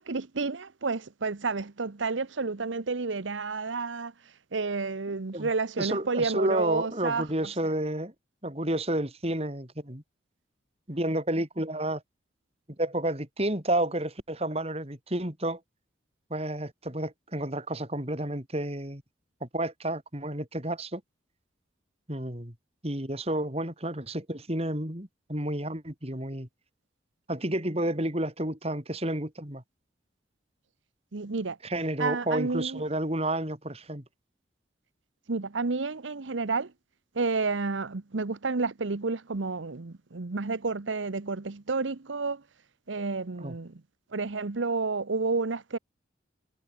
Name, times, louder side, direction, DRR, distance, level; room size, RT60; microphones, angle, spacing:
voice 1, 0.0-7.3 31.1-31.6 32.0-32.8 35.3-36.7 37.1-42.4 42.9-43.8 44.1-45.8, right 4 dB, 85° right, 1.0 m, -30 dB
voice 2, 5.8-8.1 8.4-10.0 10.9-12.0 12.8-15.6 16.3-19.0 19.4-21.0 22.1-22.5 22.8-26.5 27.3-29.6 31.6-34.0 43.4-43.6, right 1 dB, 35° right, 4.0 m, -30 dB
head